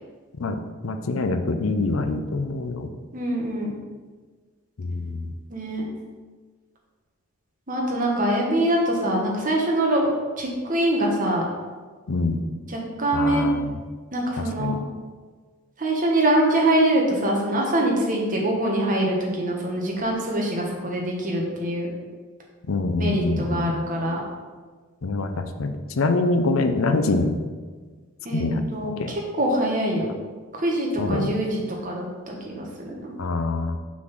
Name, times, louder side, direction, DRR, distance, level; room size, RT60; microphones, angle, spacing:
voice 1, 0.8-2.9 4.8-5.3 12.1-12.4 13.1-13.7 14.4-14.8 22.7-23.7 25.0-27.4 28.3-28.6 29.0-29.1 31.0-31.4 33.2-33.8, left 3 dB, 75° left, 8 dB, 0.6 m, -25 dB
voice 2, 3.1-3.7 5.5-5.8 7.7-10.1 10.4-11.5 12.7-13.5 14.1-14.8 15.8-21.9 23.0-24.2 28.2-28.4 28.7-28.9 29.4-30.1 30.5-33.1, right 1 dB, 40° right, -1 dB, 1.3 m, -24 dB
6.1 x 3.9 x 6.0 m, 1.4 s
head